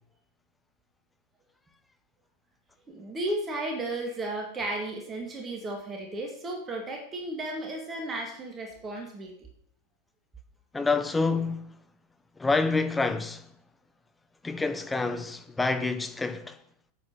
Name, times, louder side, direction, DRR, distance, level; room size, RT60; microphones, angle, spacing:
voice 1, 2.9-9.3, right 2 dB, 20° right, 2.4 m, -34 dB
voice 2, 10.7-11.7 12.4-13.4 14.4-16.6, left 3 dB, 10° left, 1.0 m, -27 dB
8.8 x 8.6 x 6.8 m
figure-of-eight pair, 90°, 0 cm